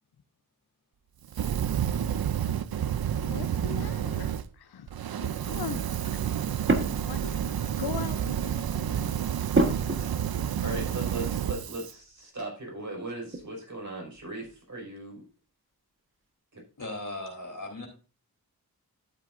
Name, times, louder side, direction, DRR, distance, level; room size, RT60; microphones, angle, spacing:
Fire, 1.3-4.4 4.9-11.9, right 9 dB, 70° right, 0.6 m, -30 dB
voice 1, 3.3-4.9 5.2-6.2 7.1-7.4 7.8-9.2, left 8 dB, 80° left, 0.7 m, -40 dB
sound 1, 6.7-7.4 7.9-8.2 9.5-10.5 10.9-11.0 13.3-13.6 13.9-14.6, right 2 dB, 30° right, 1.4 m, -29 dB
voice 2, 10.6-15.3 16.5-16.6, right 2 dB, 50° right, 5.3 m, -38 dB
voice 3, 16.8-17.9, left 2 dB, 50° left, 3.7 m, -37 dB
12.5 x 7.7 x 2.6 m
cardioid pair, 65°, 38 cm